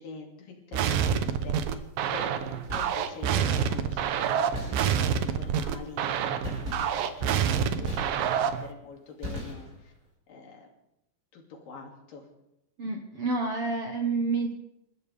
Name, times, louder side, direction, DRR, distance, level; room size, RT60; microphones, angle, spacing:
voice 1, 0.0-1.7 2.1-7.5 7.8-9.9 10.3-10.7 11.3-12.2, left 4 dB, 70° left, 1 dB, 4.1 m, -45 dB
sound 1, 0.7-8.7, right 8 dB, 75° right, 2.6 m, -27 dB
sound 2, 2.5-3.2 4.5-5.3 6.4-8.6 9.2-10.0, equal, 20° right, 6.4 m, -38 dB
voice 2, 12.8-14.5, right 3 dB, 60° right, 2 dB, 1.6 m, -29 dB
29.0 x 14.0 x 3.5 m, 0.85 s
omnidirectional pair, 4.2 m